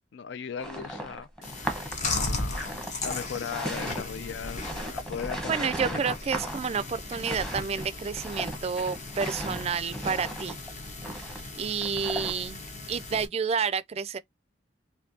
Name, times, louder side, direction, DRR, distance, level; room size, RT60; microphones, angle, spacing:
voice 1, 0.1-1.3 1.5-1.7 2.0-2.8 3.0-6.0, left 7 dB, 70° left, 0.4 m, -37 dB
sound 1, 0.6-12.5, right 1 dB, 5° left, 0.9 m, -36 dB
Chewing mastication, 1.4-13.3, left 2 dB, 40° left, 1.0 m, -37 dB
voice 2, 5.5-10.6 11.6-12.6 12.9-14.2, right 6 dB, 35° right, 0.3 m, -30 dB
4.3 x 2.7 x 2.6 m
head